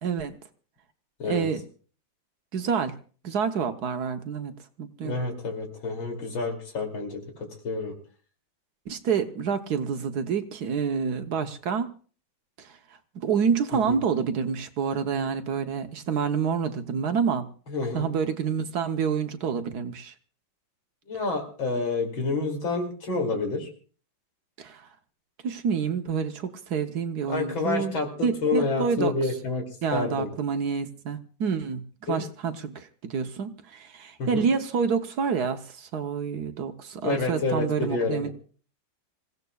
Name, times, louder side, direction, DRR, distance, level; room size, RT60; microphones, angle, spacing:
voice 1, 0.0-0.4 1.3-1.6 2.5-3.0 3.2-4.5 4.8-5.2 8.9-11.9 12.6-12.7 13.1-17.4 17.9-20.1 24.6-24.8 25.4-27.9 28.2-29.1 29.8-38.3, right 6 dB, 60° right, 7 dB, 1.3 m, -28 dB
voice 2, 5.0-7.9 13.9-14.0 17.7-18.1 21.1-23.7 27.3-29.6 29.9-30.3 32.1-32.2 34.2-34.5 37.0-38.3, left 3 dB, 85° left, 3 dB, 3.5 m, -28 dB
27.0 x 16.0 x 2.3 m, 0.40 s
omnidirectional pair, 2.1 m